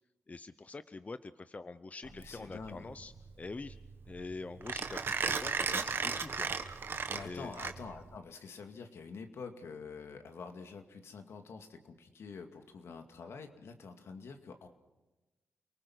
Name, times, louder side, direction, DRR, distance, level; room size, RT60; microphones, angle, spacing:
voice 1, 0.3-3.8 4.1-6.8 7.2-7.5, left 3 dB, 30° left, 13 dB, 0.7 m, -45 dB
voice 2, 2.0-2.9 7.1-14.7, left 5 dB, 75° left, 6 dB, 2.2 m, -47 dB
Mechanisms, 2.1-8.2, right 5 dB, 55° right, 1.4 m, -36 dB
29.0 x 19.0 x 6.2 m, 1.1 s
cardioid pair, 65°, 4 cm